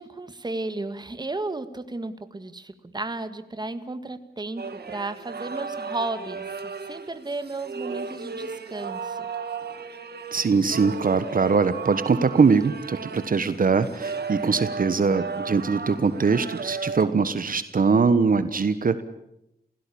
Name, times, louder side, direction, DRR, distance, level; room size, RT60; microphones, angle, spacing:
voice 1, 0.0-9.3, right 2 dB, 25° right, 10 dB, 1.7 m, -34 dB
sound 1, 4.6-17.0, right 5 dB, 85° right, 1.9 m, -35 dB
voice 2, 10.3-19.0, right 5 dB, 60° right, 12 dB, 1.3 m, -22 dB
29.0 x 16.5 x 8.6 m, 0.83 s
wide cardioid pair, 115°, 16 cm